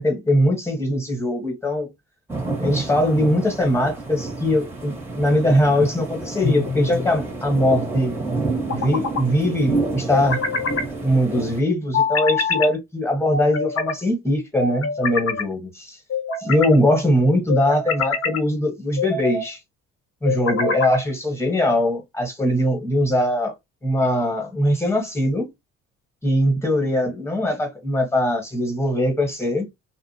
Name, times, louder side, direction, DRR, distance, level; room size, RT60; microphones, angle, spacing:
voice 1, 0.0-1.9 2.6-8.1 8.7-10.4 11.0-16.0 16.4-19.6 20.2-23.5 23.8-25.5 26.2-29.7, left 1 dB, 10° left, 1.2 m, -21 dB
sound 1, 2.3-11.6, right 3 dB, 10° right, 0.9 m, -29 dB
sound 2, 6.4-7.1 8.5-9.2 10.1-10.9 11.9-12.7 13.3-14.0 14.6-15.4 16.1-16.8 17.5-18.4 19.0-19.5 20.2-21.1, left 4 dB, 50° left, 0.8 m, -25 dB
2.5 x 2.1 x 2.7 m
cardioid pair, 90°, 30 cm